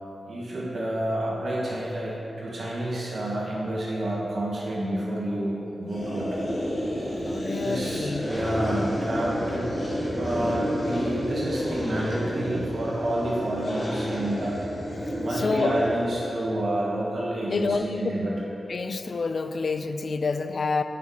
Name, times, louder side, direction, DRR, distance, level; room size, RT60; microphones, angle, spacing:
voice 1, 0.3-6.5 7.6-9.7 10.2-14.6 15.2-18.4, right 1 dB, 65° right, -6 dB, 1.7 m, -29 dB
sound 1, 5.9-16.4, equal, 45° left, 1.6 m, -30 dB
voice 2, 7.3-8.3 15.3-15.8 17.5-18.0 18.7-20.8, left 4 dB, 60° left, 9 dB, 0.3 m, -28 dB
7.4 x 5.7 x 3.9 m, 3.0 s
cardioid pair, 65°, 0 cm